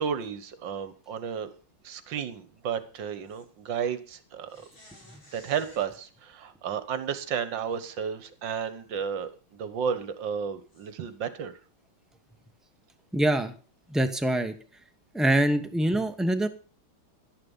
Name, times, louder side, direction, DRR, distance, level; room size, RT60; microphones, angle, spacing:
voice 1, 0.0-1.5 1.8-4.5 5.3-11.5, right 7 dB, 65° right, 13 dB, 1.8 m, -32 dB
sound 1, 3.2-3.5 4.5-5.9 7.7-7.8 8.4-8.5 10.7-10.9, left 1 dB, 85° left, 6.1 m, -54 dB
voice 2, 13.1-13.5 13.9-14.5 15.1-16.5, right 1 dB, ahead, 7 dB, 0.4 m, -24 dB
12.0 x 10.5 x 5.5 m, 0.37 s
omnidirectional pair, 2.2 m